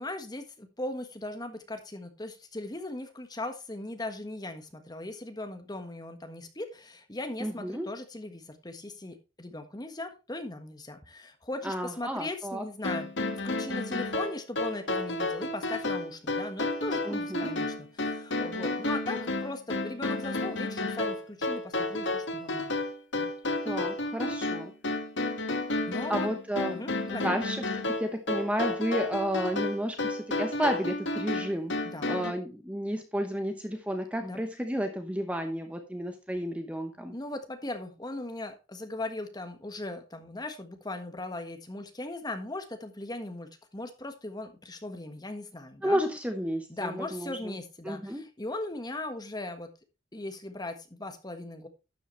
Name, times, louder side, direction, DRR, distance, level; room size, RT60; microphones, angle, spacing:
voice 1, 0.0-13.1 13.4-22.7 23.2-23.3 25.9-26.3 26.7-27.3 31.8-32.2 34.2-34.4 37.1-46.0 46.7-49.7 50.1-51.7, left 2 dB, 20° left, 6 dB, 1.4 m, -38 dB
voice 2, 7.4-7.9 11.6-12.7 17.0-17.6 23.6-24.7 26.1-26.8 27.1-31.7 32.0-37.1 45.8-47.5 47.8-48.2, equal, 5° right, 5 dB, 1.0 m, -32 dB
sound 1, 12.8-32.3, left 2 dB, 65° left, 1.6 m, -31 dB
12.0 x 8.0 x 3.2 m, 0.28 s
head